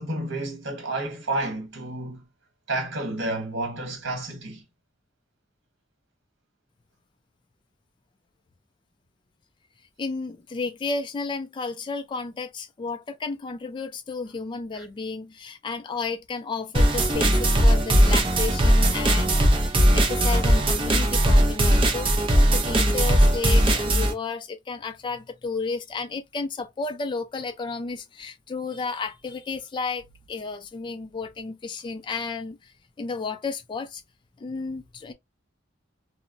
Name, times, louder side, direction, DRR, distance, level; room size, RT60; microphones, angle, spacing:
voice 1, 0.0-2.3 2.7-4.6 14.7-14.8, right 2 dB, 65° right, 1.2 m, -30 dB
voice 2, 10.0-22.1 22.5-34.0 34.4-35.1, left 4 dB, 25° left, 0.3 m, -32 dB
sound 1, 16.7-24.1, right 1 dB, 25° right, 0.5 m, -19 dB
Bass guitar, 17.1-23.4, right 1 dB, 5° right, 0.8 m, -42 dB
2.1 x 2.0 x 3.7 m
head